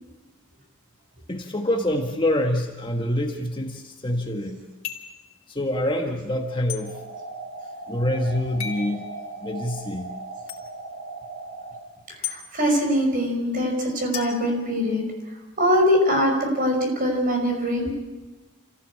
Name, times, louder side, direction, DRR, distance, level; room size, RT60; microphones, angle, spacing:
voice 1, 1.3-4.6 5.5-6.9 7.9-9.0 9.4-10.1, left 1 dB, 20° left, 3 dB, 1.6 m, -26 dB
sound 1, 4.8-5.2 6.7-6.8 8.6-8.9 10.5-10.6 12.2-12.4 14.1-15.2, left 9 dB, 70° left, 3.6 m, -34 dB
sound 2, 6.8-11.8, right 3 dB, 60° right, 4.3 m, -38 dB
voice 2, 12.2-15.0 15.6-17.9, equal, 40° right, 2 dB, 5.5 m, -22 dB
27.0 x 16.0 x 8.7 m, 1.2 s
head